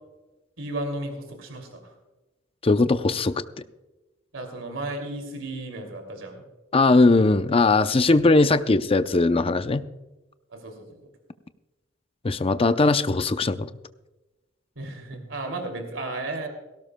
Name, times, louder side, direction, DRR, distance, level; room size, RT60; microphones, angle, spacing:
voice 1, 0.6-1.9 4.3-6.4 10.5-11.0 14.8-16.5, right 2 dB, 75° right, 4 dB, 2.7 m, -34 dB
voice 2, 2.6-3.3 6.7-9.8 12.2-13.7, left 3 dB, 30° left, 11 dB, 0.5 m, -19 dB
18.5 x 17.0 x 2.2 m, 1.1 s
head